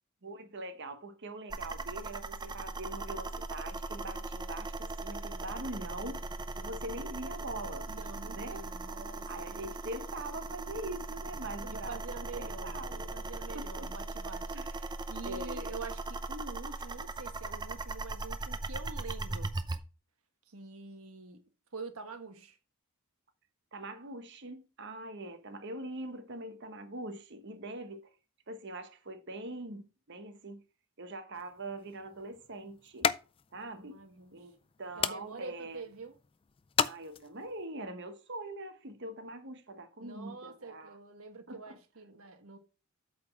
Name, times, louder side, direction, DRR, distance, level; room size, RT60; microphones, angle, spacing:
voice 1, 0.2-6.3 6.6-7.9 8.3-8.7 9.3-13.1 13.5-13.9 14.5-14.7 15.3-15.8 23.7-28.1 28.5-30.6 31.0-33.1 33.5-34.0 34.3-35.9 36.8-41.0 41.5-41.8, right 2 dB, 55° right, 1.2 m, -43 dB
sound 1, 1.5-19.8, right 2 dB, 20° right, 0.6 m, -39 dB
voice 2, 7.9-9.7 11.7-19.5 20.5-22.6 33.7-34.4 35.0-36.1 40.0-42.6, right 4 dB, 80° right, 1.4 m, -46 dB
sound 2, 31.3-37.6, left 7 dB, 25° left, 0.3 m, -37 dB
8.4 x 4.1 x 5.9 m
head